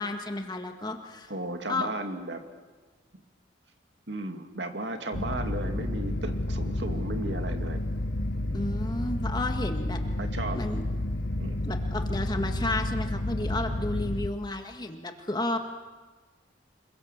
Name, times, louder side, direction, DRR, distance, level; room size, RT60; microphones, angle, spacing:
voice 1, 0.0-1.3 1.7-1.9 8.5-10.0 10.5-10.8 11.6-15.6, left 2 dB, 25° left, 5 dB, 1.8 m, -32 dB
voice 2, 1.3-2.4 4.1-7.8 8.4-8.8 10.2-10.6 11.4-11.6, right 2 dB, 70° right, 6 dB, 2.4 m, -35 dB
sound 1, 5.1-14.3, left 1 dB, 75° left, 1.2 m, -30 dB
27.0 x 22.5 x 7.4 m, 1.4 s
head